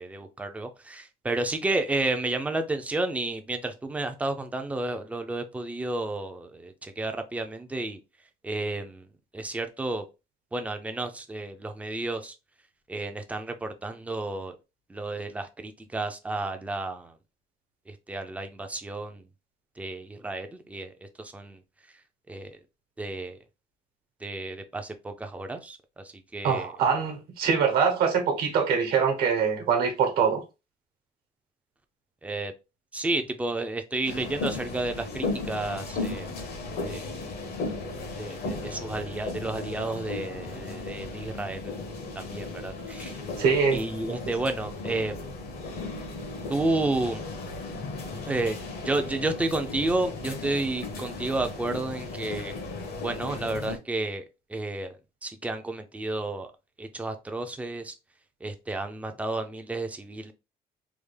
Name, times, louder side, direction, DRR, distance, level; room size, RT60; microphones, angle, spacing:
voice 1, 0.0-8.0 8.4-9.0 9.3-10.0 10.5-12.3 12.9-14.6 14.9-17.1 17.9-19.2 19.8-21.6 22.3-22.6 23.0-23.4 24.2-26.7 32.2-32.5 32.9-36.3 36.9-37.1 38.2-41.7 42.2-43.2 43.7-45.3 46.5-47.2 48.2-48.6 48.8-52.5 53.0-54.2 54.5-55.0 55.2-56.5 56.8-57.9 58.4-60.3, right 2 dB, 10° right, 0.4 m, -31 dB
voice 2, 26.4-30.4 43.4-43.8, right 6 dB, 70° right, 1.1 m, -24 dB
sound 1, 34.0-53.8, left 3 dB, 70° left, 1.2 m, -36 dB
3.5 x 2.3 x 3.2 m
cardioid pair, 150°, 16 cm